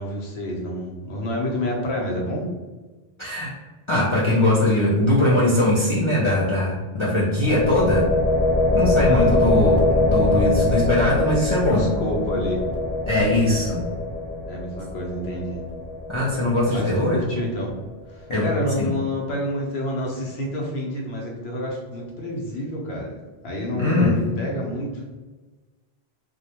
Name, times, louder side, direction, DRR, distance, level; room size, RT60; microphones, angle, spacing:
voice 1, 0.0-2.5 6.9-7.3 9.0-9.4 11.7-12.6 14.5-15.6 16.7-17.7 18.1-23.1 23.4-25.0, left 1 dB, 80° left, -2 dB, 1.0 m, -28 dB
voice 2, 3.2-3.5 3.9-8.1 8.7-11.9 13.1-13.8 16.1-17.2 18.3-18.5 18.8-18.9 23.8-24.2, left 1 dB, 50° left, -8 dB, 0.3 m, -21 dB
sound 1, 7.4-17.2, left 2 dB, 20° right, 0.4 m, -23 dB
2.3 x 2.1 x 2.8 m, 1.2 s
omnidirectional pair, 1.1 m